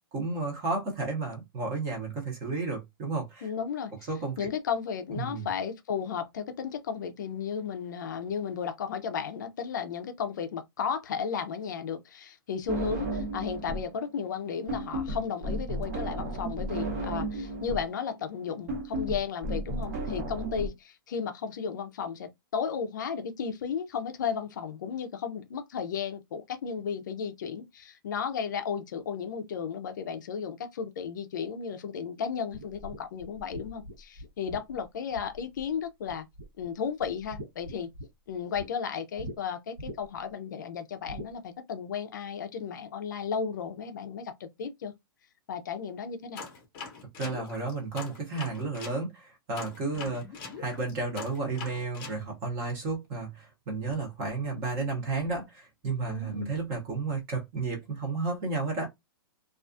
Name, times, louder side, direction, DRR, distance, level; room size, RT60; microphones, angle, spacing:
voice 1, 0.1-3.5 4.1-4.5 5.1-5.5 47.2-50.3 50.6-58.9, right 3 dB, 20° right, 0.7 m, -32 dB
voice 2, 3.4-3.9 4.4-36.2 36.6-37.9 38.3-44.9 45.5-46.5 56.1-56.6, left 6 dB, 50° left, 0.4 m, -34 dB
sound 1, 12.7-13.9 14.2-20.7, right 1 dB, 45° right, 1.0 m, -33 dB
sound 2, 32.5-35.8 36.1-36.7 37.0-38.7 39.2-39.4 39.8-40.3 41.1-41.3, equal, 85° right, 1.1 m, -43 dB
sound 3, 46.3-49.0 49.5-52.2, left 5 dB, 20° left, 0.8 m, -42 dB
2.3 x 2.3 x 2.5 m
hypercardioid pair, 175°, 13 cm